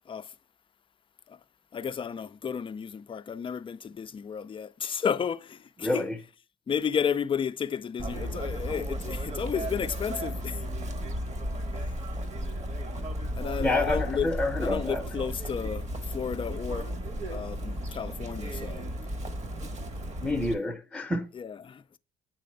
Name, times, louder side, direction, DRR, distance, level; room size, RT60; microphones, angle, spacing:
voice 1, 1.7-6.1 6.7-10.6 11.8-11.9 13.3-14.3 14.6-15.9 16.1-18.9 21.3-22.0, left 7 dB, 25° left, 0.4 m, -32 dB
voice 2, 5.8-6.2 13.6-15.0 20.2-21.3, left 2 dB, ahead, 0.8 m, -28 dB
Chirp tweet, 8.0-20.5, equal, 35° right, 1.2 m, -34 dB
8.5 x 3.3 x 3.3 m
cardioid pair, 90°, 20 cm